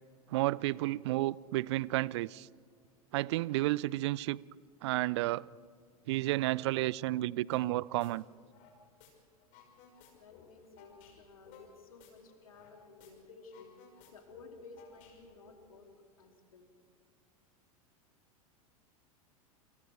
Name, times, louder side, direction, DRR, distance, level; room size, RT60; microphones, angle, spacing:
voice 1, 0.3-2.5 3.1-4.4 4.8-5.4 6.1-8.2, right 17 dB, 50° right, 24 dB, 0.4 m, -31 dB
sound 1, 7.5-7.7 8.0-9.1 9.4-12.7 13.0-13.1 13.4-15.5, left 7 dB, 40° left, 5.8 m, -58 dB
voice 2, 10.2-13.7 14.1-15.9 16.2-16.7, left 3 dB, 65° left, 3 dB, 3.1 m, -55 dB
28.5 x 28.0 x 3.5 m, 2.1 s
figure-of-eight pair, 90°, 19 cm